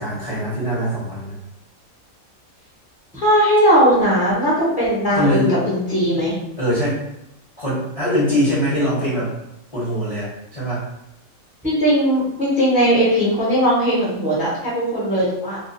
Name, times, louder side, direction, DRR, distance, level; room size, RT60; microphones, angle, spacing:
voice 1, 0.0-1.3 5.1-5.6 6.6-7.1 7.6-9.3 9.7-10.8, equal, 30° left, -9 dB, 0.7 m, -22 dB
voice 2, 3.1-6.3 11.6-15.6, equal, 5° right, -8 dB, 0.7 m, -18 dB
2.4 x 2.3 x 2.5 m, 0.83 s
omnidirectional pair, 1.4 m